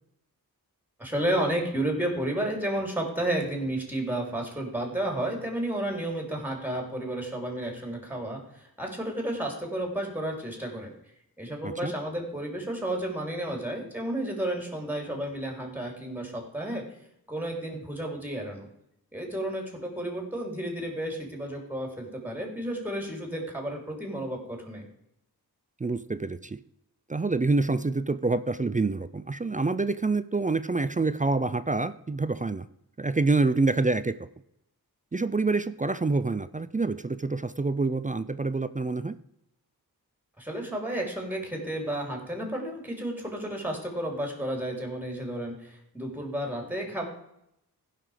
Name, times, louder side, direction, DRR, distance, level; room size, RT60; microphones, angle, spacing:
voice 1, 1.0-10.9 11.4-16.8 17.3-18.6 19.1-24.8 40.4-47.1, right 1 dB, 5° right, 2 dB, 3.4 m, -32 dB
voice 2, 25.8-26.6 27.1-32.6 33.0-34.2 35.1-39.2, right 3 dB, 20° right, 14 dB, 0.4 m, -27 dB
15.5 x 5.9 x 5.0 m, 0.79 s
wide cardioid pair, 80°, 38 cm